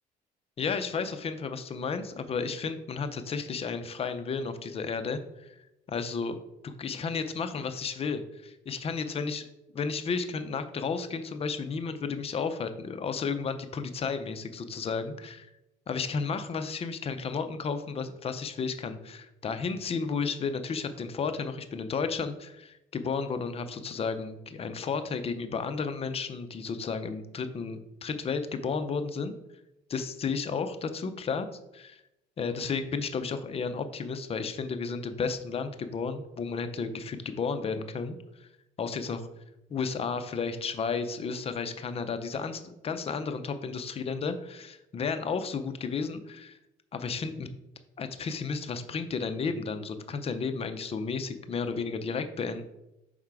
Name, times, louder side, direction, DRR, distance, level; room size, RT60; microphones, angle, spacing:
voice 1, 0.6-5.6 5.9-6.4 6.6-9.5 9.7-15.5 15.9-29.3 29.9-31.5 31.7-32.0 32.4-38.5 38.8-39.3 39.7-46.6 46.9-47.5 48.0-52.7, left 5 dB, 35° left, 9 dB, 0.6 m, -33 dB
5.5 x 3.6 x 4.7 m, 0.90 s
cardioid pair, 110°, 17 cm